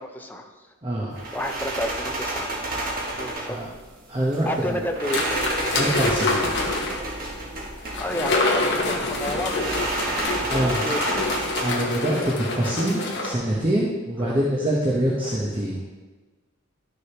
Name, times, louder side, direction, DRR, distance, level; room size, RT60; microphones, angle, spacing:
voice 1, 0.0-0.7 1.3-3.6 4.4-5.2 8.0-11.0 14.2-14.4, equal, 10° left, 3 dB, 0.7 m, -31 dB
voice 2, 0.8-1.2 3.4-3.7 4.1-4.8 5.7-6.5 10.5-10.8 11.6-15.8, right 1 dB, 25° right, -4 dB, 1.1 m, -25 dB
sound 1, 1.2-11.9, right 1 dB, 45° right, 1.6 m, -31 dB
sound 2, 5.0-7.1 7.9-13.3, left 2 dB, 55° left, 1.3 m, -26 dB
11.5 x 6.6 x 3.0 m, 1.3 s
head